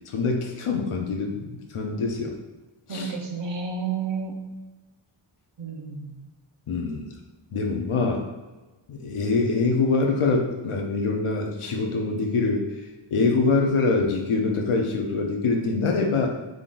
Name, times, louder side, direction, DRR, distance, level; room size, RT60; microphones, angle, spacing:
voice 1, 0.1-1.4 1.7-2.4 2.9-3.1 6.7-7.1 7.5-8.2 8.9-12.7 13.1-16.3, left 3 dB, 80° left, 2 dB, 0.8 m, -24 dB
voice 2, 2.9-4.3 5.6-6.2, right 5 dB, 60° right, 1 dB, 0.8 m, -31 dB
3.7 x 3.7 x 2.5 m, 1.2 s
wide cardioid pair, 75°, 50 cm